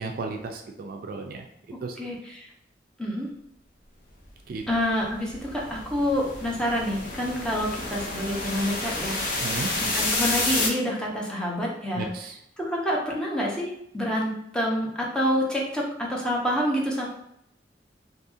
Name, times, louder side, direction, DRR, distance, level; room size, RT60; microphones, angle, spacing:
voice 1, 0.0-1.4 1.8-2.0 4.5-4.6 9.4-9.7 12.0-12.4, right 4 dB, 55° right, 3 dB, 0.3 m, -34 dB
voice 2, 2.0-2.5 3.0-3.3 4.7-9.2 9.8-12.1 12.6-17.1, equal, 5° left, -4 dB, 0.5 m, -27 dB
sound 1, 4.7-10.7, left 2 dB, 50° left, 0.6 m, -29 dB
2.7 x 2.7 x 2.4 m, 0.75 s
head